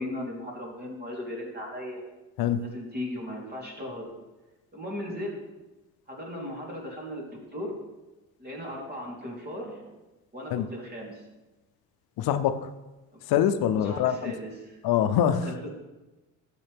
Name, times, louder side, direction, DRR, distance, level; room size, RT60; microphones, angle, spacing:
voice 1, 0.0-2.0 2.6-4.1 4.7-5.4 6.1-7.7 8.4-9.9 10.3-11.2 13.1-13.2 13.7-14.8 15.4-15.7, left 1 dB, 25° right, -2 dB, 3.5 m, -37 dB
voice 2, 2.4-2.7 10.5-10.7 12.2-12.7 13.3-14.3 14.8-15.5, left 9 dB, 75° left, 10 dB, 0.7 m, -24 dB
12.0 x 7.7 x 3.5 m, 1.1 s
cardioid pair, 95°, 37 cm